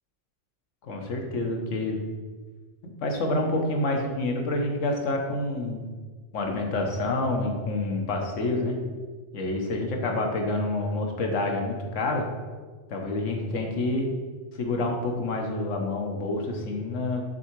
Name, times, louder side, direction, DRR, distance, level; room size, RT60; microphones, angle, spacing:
voice 1, 0.8-2.0 3.0-5.8 6.3-8.8 9.3-12.3 12.9-14.1 14.6-17.2, left 2 dB, 85° left, 2 dB, 1.3 m, -28 dB
6.8 x 3.6 x 4.5 m, 1.4 s
omnidirectional pair, 1.2 m